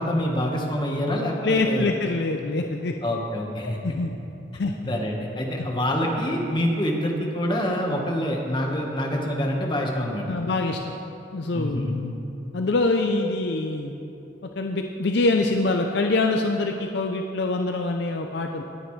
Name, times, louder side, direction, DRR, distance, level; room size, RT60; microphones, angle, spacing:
voice 1, 0.0-1.9 3.0-3.8 4.9-10.4 11.5-12.0, equal, 25° left, 0 dB, 1.3 m, -26 dB
voice 2, 1.4-2.9 3.6-4.1 4.5-4.9 10.3-10.8 11.3-12.1 12.5-13.9 14.4-18.6, left 2 dB, 60° left, 4 dB, 0.5 m, -25 dB
18.5 x 9.2 x 3.3 m, 2.9 s
head